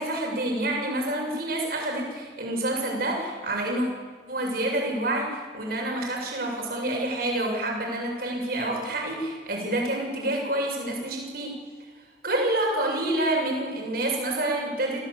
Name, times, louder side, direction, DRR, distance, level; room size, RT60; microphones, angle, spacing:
voice 1, 0.0-3.9 4.3-11.6 12.2-15.1, right 1 dB, 55° right, 0 dB, 7.2 m, -28 dB
28.0 x 17.5 x 8.5 m, 1.5 s
head